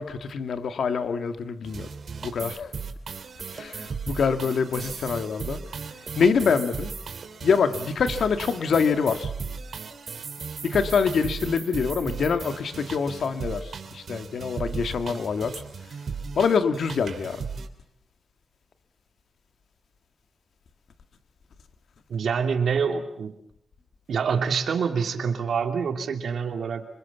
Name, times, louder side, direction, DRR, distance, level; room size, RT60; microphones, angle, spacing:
voice 1, 0.0-1.9 2.2-2.7 3.5-5.6 6.2-6.9 7.4-9.3 10.6-15.6 16.4-17.4, left 5 dB, 70° left, 1.9 m, -25 dB
sound 1, 1.6-17.7, right 5 dB, 55° right, 3.0 m, -36 dB
voice 2, 22.1-23.4 24.1-26.9, right 6 dB, 70° right, 2.9 m, -26 dB
27.5 x 26.5 x 7.3 m
wide cardioid pair, 175°, 0 cm